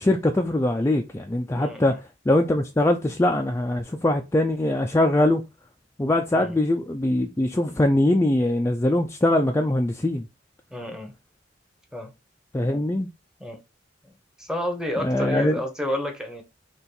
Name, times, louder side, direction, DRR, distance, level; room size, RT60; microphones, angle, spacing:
voice 1, 0.0-5.4 6.0-10.2 12.5-13.1 15.0-15.6, left 1 dB, 15° left, 0.4 m, -22 dB
voice 2, 1.6-2.0 6.3-6.5 10.7-11.1 11.9-12.1 13.4-13.6 14.0-14.1 14.4-16.4, left 1 dB, 5° right, 0.9 m, -30 dB
4.3 x 3.0 x 3.9 m
head